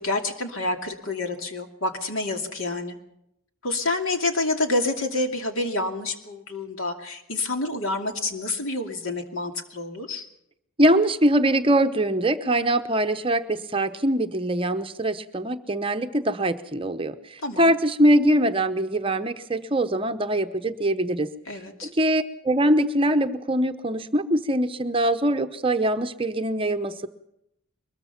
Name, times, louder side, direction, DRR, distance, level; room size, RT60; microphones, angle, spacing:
voice 1, 0.0-3.0 3.6-10.3 17.4-17.7 21.5-21.9, left 2 dB, 65° left, 4 dB, 2.6 m, -28 dB
voice 2, 10.8-21.3 21.8-27.1, right 1 dB, 25° right, 8 dB, 0.8 m, -23 dB
22.5 x 21.5 x 5.9 m, 0.79 s
head